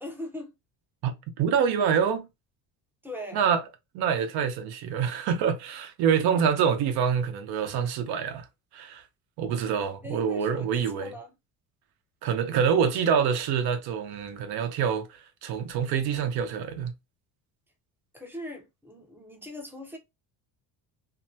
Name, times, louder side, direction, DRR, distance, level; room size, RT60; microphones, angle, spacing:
voice 1, 0.0-0.5 3.0-3.4 10.0-10.7 11.0-11.3 18.1-20.0, left 1 dB, 5° right, 0.6 m, -40 dB
voice 2, 1.4-2.3 3.3-3.6 3.9-8.5 8.7-9.0 9.4-11.1 12.2-16.9, right 7 dB, 65° right, 0.8 m, -26 dB
2.6 x 2.2 x 2.7 m
cardioid pair, 140°, 41 cm